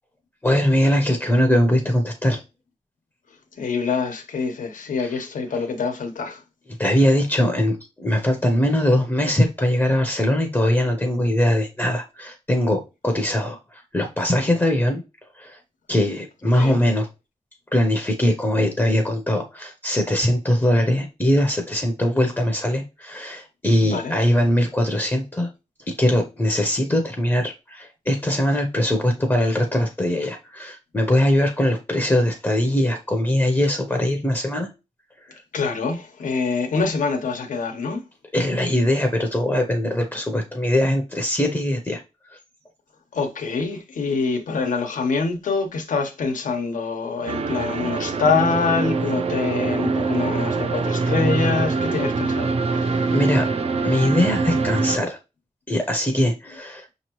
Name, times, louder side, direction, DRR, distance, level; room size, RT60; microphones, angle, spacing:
voice 1, 0.4-2.4 5.0-5.1 6.8-15.0 15.4-15.6 15.9-17.1 17.7-25.5 26.0-34.7 35.2-35.4 38.3-42.0 42.3-42.4 51.0-51.2 53.1-53.5 53.8-55.2 55.7-56.9, left 1 dB, 15° left, 0.7 m, -21 dB
voice 2, 3.5-6.4 16.6-16.8 23.8-24.2 35.5-38.0 43.1-53.1, left 4 dB, 90° left, 1.0 m, -25 dB
sound 1, 47.3-55.0, right 4 dB, 50° right, 0.5 m, -24 dB
5.9 x 2.9 x 3.0 m
wide cardioid pair, 150°, 13 cm